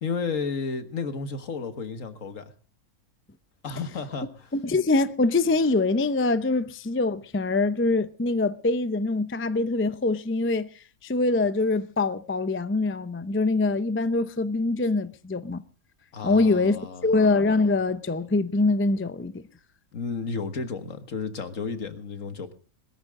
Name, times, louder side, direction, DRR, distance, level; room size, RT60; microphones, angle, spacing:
voice 1, 0.0-2.5 3.6-4.5 16.1-17.2 19.9-22.5, left 4 dB, 65° left, 1.9 m, -32 dB
voice 2, 4.5-10.7 11.0-15.6 16.2-19.4, left 3 dB, 20° left, 0.3 m, -24 dB
21.0 x 13.5 x 3.7 m
omnidirectional pair, 1.5 m